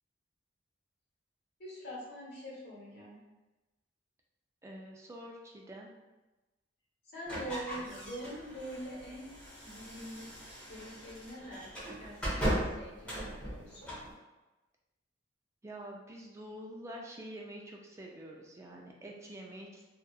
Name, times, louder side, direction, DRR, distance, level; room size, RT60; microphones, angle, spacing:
voice 1, 1.6-3.2 7.1-9.3 9.6-11.7 12.0-13.9, equal, 60° left, -6 dB, 1.1 m, -44 dB
voice 2, 4.6-5.9 15.6-19.9, right 1 dB, 15° right, -1 dB, 0.3 m, -47 dB
sound 1, 7.3-14.1, right 1 dB, 5° left, 0.9 m, -38 dB
2.8 x 2.3 x 2.3 m, 1.1 s
head